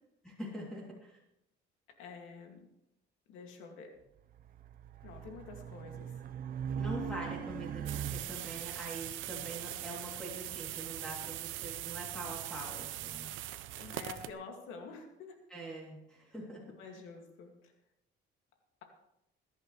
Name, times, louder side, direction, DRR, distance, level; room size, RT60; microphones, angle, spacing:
voice 1, 0.2-1.2 6.7-13.3 15.5-16.7, right 1 dB, 5° left, -4 dB, 3.2 m, -44 dB
voice 2, 2.0-2.6 3.3-3.9 5.0-6.1 13.8-15.4 16.8-17.5, left 4 dB, 85° left, 2 dB, 2.5 m, -48 dB
Race car auto racing, 4.3-8.7, right 8 dB, 45° right, 0.8 m, -40 dB
sound 1, 7.9-14.3, right 14 dB, 80° right, 0.7 m, -41 dB
21.0 x 11.0 x 3.3 m, 0.83 s
cardioid pair, 135°, 20 cm